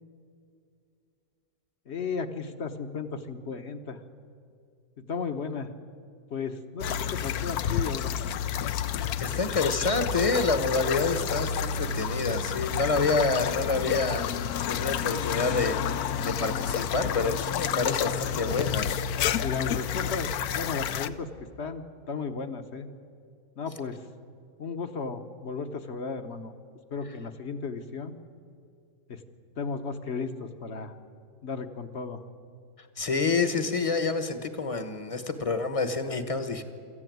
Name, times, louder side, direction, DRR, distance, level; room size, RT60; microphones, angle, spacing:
voice 1, 1.9-4.0 5.0-5.7 6.3-8.1 19.4-21.3 21.6-21.8 22.1-22.9 23.6-24.0 24.6-26.5 26.9-28.2 29.1-29.2 29.6-30.9 31.4-32.2, left 5 dB, 45° left, 8 dB, 1.2 m, -34 dB
sound 1, 6.8-21.1, left 8 dB, 70° left, 1.1 m, -30 dB
voice 2, 8.9-14.3 14.7-15.8 16.2-18.9 32.8-36.6, left 3 dB, 25° left, 9 dB, 1.1 m, -28 dB
23.5 x 14.5 x 9.3 m, 2.4 s
omnidirectional pair, 1.8 m